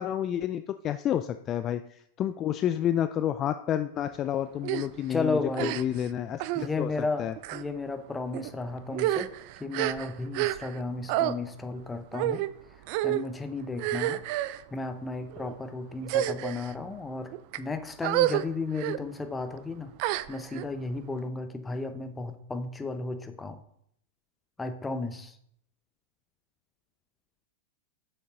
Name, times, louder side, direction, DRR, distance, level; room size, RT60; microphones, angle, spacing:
voice 1, 0.0-1.8 2.2-6.9 7.2-7.3, left 10 dB, 30° left, 10 dB, 0.3 m, -29 dB
sound 1, 4.6-4.9 5.5-6.1 6.4-6.7 7.4-7.6 8.3-8.5 8.9-10.8 11.1-11.3 12.1-12.5 12.9-13.2 13.8-14.6 15.3-15.5 16.0-16.7 17.3-17.6 18.0-18.4 18.8-19.0 20.0-20.6, right 14 dB, 50° right, 0.4 m, -29 dB
voice 2, 5.1-5.8 6.5-9.3 9.6-12.5 13.0-14.2 14.7-19.9 20.3-23.6 24.6-25.4, left 3 dB, 10° left, 8 dB, 0.8 m, -33 dB
6.7 x 6.6 x 3.7 m, 0.70 s
hypercardioid pair, 100°, 0 cm